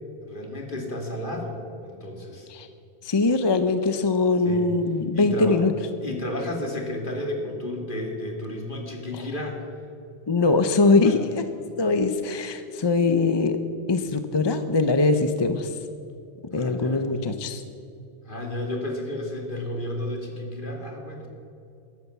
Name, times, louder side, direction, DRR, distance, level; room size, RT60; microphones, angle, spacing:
voice 1, 0.2-2.5 4.4-4.7 5.1-5.7 6.0-9.7 11.0-11.1 11.5-11.7 16.5-17.1 18.2-21.3, left 1 dB, 50° left, 2 dB, 2.5 m, -32 dB
voice 2, 3.0-5.7 9.1-9.2 10.3-11.4 11.8-13.6 13.9-15.8 16.5-17.6, left 3 dB, 30° left, 9 dB, 0.6 m, -22 dB
13.5 x 10.5 x 7.0 m, 2.7 s
omnidirectional pair, 1.1 m